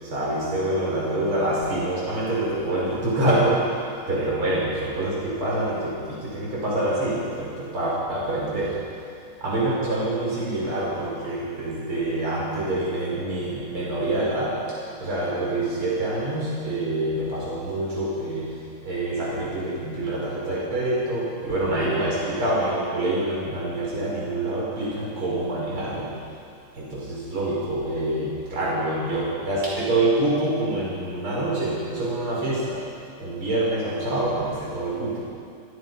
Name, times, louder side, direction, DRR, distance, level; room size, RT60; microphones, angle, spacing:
voice 1, 0.0-9.0 9.4-26.2 26.7-35.2, right 1 dB, 85° right, -6 dB, 6.3 m, -26 dB
29.5 x 28.0 x 5.6 m, 2.5 s
omnidirectional pair, 2.3 m